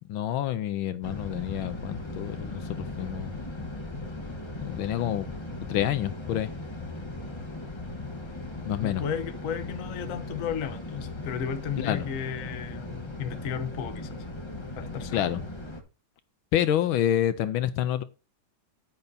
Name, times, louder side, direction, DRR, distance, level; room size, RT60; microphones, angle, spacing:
voice 1, 0.1-3.4 4.6-5.3 5.7-6.5 8.6-9.0 11.8-12.1 15.1-15.4 16.5-18.0, left 11 dB, 75° left, 1.4 m, -28 dB
sound 1, 1.0-15.8, left 2 dB, 20° left, 0.7 m, -38 dB
voice 2, 8.8-14.2 14.8-15.3, left 7 dB, 50° left, 1.1 m, -34 dB
9.5 x 8.8 x 2.7 m
omnidirectional pair, 2.3 m